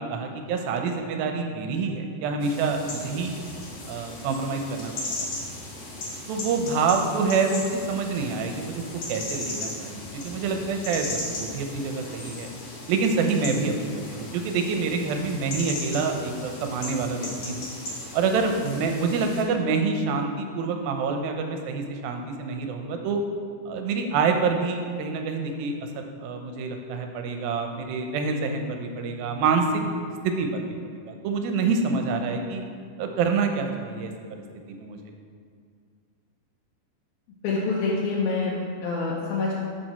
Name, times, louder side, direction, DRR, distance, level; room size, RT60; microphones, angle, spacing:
voice 1, 0.0-3.4 3.9-5.1 6.3-8.8 9.1-12.5 12.9-17.7 18.1-23.2 23.7-29.8 30.2-30.6 30.9-32.6 33.0-34.4 34.7-35.0, right 4 dB, 80° right, 4 dB, 2.4 m, -27 dB
sound 1, 2.4-19.4, left 2 dB, 55° left, 1.9 m, -37 dB
voice 2, 37.4-39.6, left 3 dB, 75° left, -6 dB, 2.7 m, -26 dB
7.6 x 7.1 x 4.3 m, 2.2 s
omnidirectional pair, 4.4 m